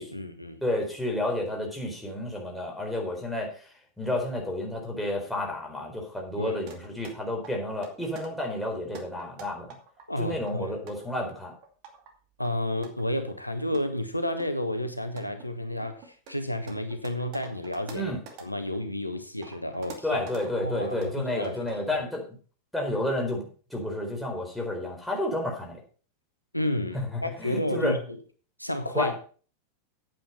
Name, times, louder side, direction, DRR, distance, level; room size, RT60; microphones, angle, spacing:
voice 1, 0.0-0.6 6.4-6.6 10.1-10.8 12.4-18.1 18.4-20.2 20.6-21.6 21.9-22.0 26.5-28.0 28.6-29.2, left 1 dB, 85° left, 1.2 m, -31 dB
voice 2, 0.6-9.7 10.2-11.5 17.9-18.2 20.0-22.2 22.7-25.8 26.9-28.0 28.9-29.1, left 1 dB, ahead, 4.3 m, -31 dB
sound 1, 6.7-7.1 7.4-8.3 8.8-10.0 10.4-12.1 12.4-13.3 13.7-13.8 14.4-14.5 15.0-18.8 19.1-20.5 20.8-21.2 21.4-21.8, right 5 dB, 45° right, 2.4 m, -47 dB
9.0 x 8.9 x 5.6 m
figure-of-eight pair, 90°, 0 cm